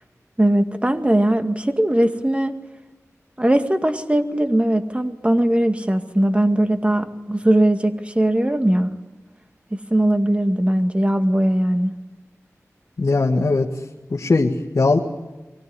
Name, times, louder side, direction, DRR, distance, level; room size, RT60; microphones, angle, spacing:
voice 1, 0.4-2.6 3.4-8.9 9.7-11.9, right 1 dB, 20° right, 6 dB, 2.1 m, -19 dB
voice 2, 13.0-13.7 14.1-15.0, left 3 dB, 70° left, 1 dB, 1.7 m, -19 dB
24.0 x 17.5 x 9.9 m, 1.2 s
wide cardioid pair, 45°, 6 cm